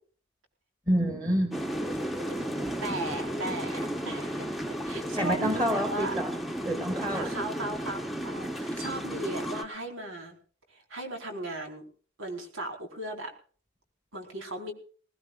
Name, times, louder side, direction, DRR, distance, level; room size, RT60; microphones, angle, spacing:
voice 1, 0.9-1.6 5.2-6.3 6.6-7.3 8.7-8.8, equal, 20° right, 4 dB, 2.4 m, -28 dB
sound 1, 1.5-9.6, equal, ahead, 1.1 m, -33 dB
voice 2, 2.3-6.2 7.1-10.4 10.7-11.8 12.2-13.3 14.1-14.7, right 2 dB, 80° right, 2 dB, 4.5 m, -37 dB
20.0 x 19.5 x 2.5 m, 0.42 s
head